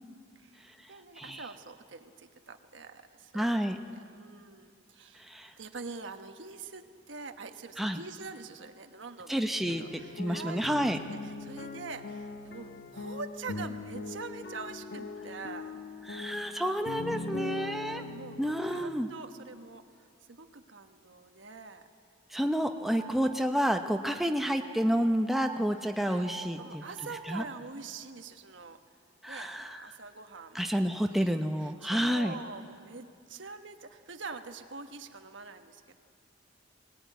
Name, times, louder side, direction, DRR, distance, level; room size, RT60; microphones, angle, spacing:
voice 1, 0.3-5.3 5.6-15.7 17.3-21.9 23.0-23.3 24.0-24.2 25.8-28.8 29.3-30.7 31.1-35.9, right 4 dB, 80° right, 6 dB, 1.3 m, -45 dB
voice 2, 3.3-3.8 5.2-5.5 7.8-8.0 9.3-11.0 16.1-18.0 18.4-19.1 22.3-27.4 29.2-29.9 30.5-32.4, equal, ahead, 5 dB, 0.8 m, -30 dB
sound 1, 9.6-19.0, left 3 dB, 55° left, 1.1 m, -41 dB
sound 2, 22.8-27.7, right 5 dB, 30° right, 2.0 m, -48 dB
20.5 x 19.0 x 9.3 m, 2.3 s
head